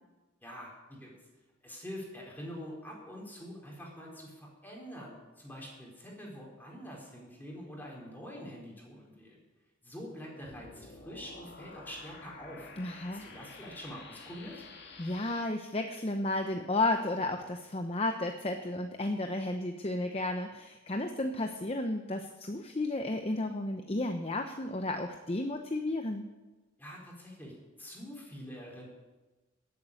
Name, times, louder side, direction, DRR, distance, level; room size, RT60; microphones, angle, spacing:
voice 1, 0.4-1.1 1.6-9.4 9.8-12.7 13.0-14.6 26.8-28.9, equal, 10° left, -2 dB, 4.2 m, -45 dB
sound 1, 10.4-15.4, left 4 dB, 55° left, 2.1 m, -50 dB
voice 2, 12.8-13.2 15.0-26.3, left 2 dB, 30° left, 5 dB, 0.8 m, -33 dB
13.5 x 8.5 x 9.0 m, 1.2 s
head